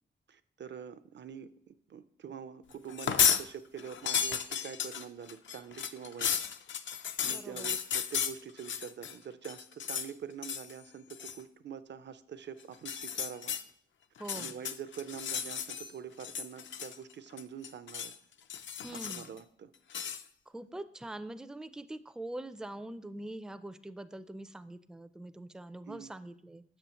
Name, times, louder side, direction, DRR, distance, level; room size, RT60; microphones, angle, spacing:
voice 1, 0.3-6.3 7.2-13.5 14.3-18.1 18.9-19.7 25.9-26.1, right 7 dB, 60° right, 14 dB, 0.5 m, -45 dB
sound 1, 2.9-3.4 3.8-9.1 9.4-10.1 10.4-10.7 11.1-11.4 12.7-13.6 14.2-15.9 16.2-17.1 17.4-18.1 18.5-19.4 19.9-20.2, left 8 dB, 65° left, 0.4 m, -33 dB
voice 2, 7.2-7.7 14.2-14.5 18.8-19.3 20.5-26.6, right 1 dB, 5° right, 12 dB, 0.3 m, -43 dB
6.9 x 6.8 x 2.9 m, 0.67 s
cardioid pair, 75°, 21 cm